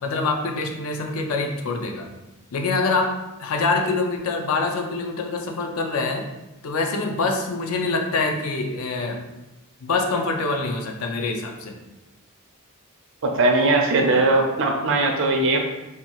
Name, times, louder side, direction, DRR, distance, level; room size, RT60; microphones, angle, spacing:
voice 1, 0.0-2.1 2.5-6.3 6.6-9.3 9.8-11.8, left 3 dB, 75° left, 3 dB, 0.4 m, -25 dB
voice 2, 13.2-15.6, right 2 dB, 60° right, 2 dB, 0.5 m, -19 dB
2.8 x 2.3 x 2.9 m, 1.0 s
head